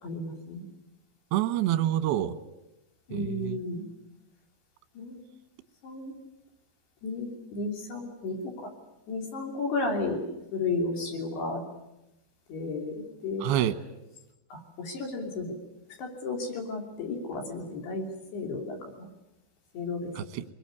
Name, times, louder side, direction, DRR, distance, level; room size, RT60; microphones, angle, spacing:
voice 1, 0.0-0.6 3.1-3.8 5.0-5.2 5.8-6.1 7.0-8.7 9.1-10.2 10.5-11.6 12.5-13.4 14.5-15.6 16.0-18.1 18.3-19.1 19.7-20.1, left 3 dB, 60° left, 4.9 m, -33 dB
voice 2, 1.3-2.4 3.1-3.6 13.4-13.8 20.2-20.4, right 12 dB, 75° right, 2.6 m, -27 dB
24.0 x 21.5 x 9.6 m
omnidirectional pair, 5.7 m